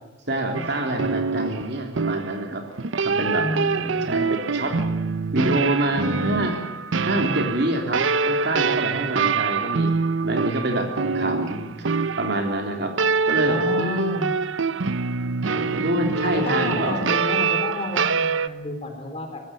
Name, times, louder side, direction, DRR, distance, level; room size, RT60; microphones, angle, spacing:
voice 1, 0.3-2.6 3.0-4.8 5.3-6.6 7.0-9.9 10.2-11.7 12.2-12.9 13.3-14.1 15.5-17.2, right 1 dB, 60° right, 4 dB, 3.5 m, -26 dB
sound 1, 0.5-18.5, right 4 dB, 80° right, 0.7 m, -25 dB
voice 2, 3.4-4.1 13.5-14.3 16.2-19.4, left 2 dB, 30° left, 4 dB, 4.2 m, -30 dB
19.5 x 16.0 x 9.6 m, 1.1 s
head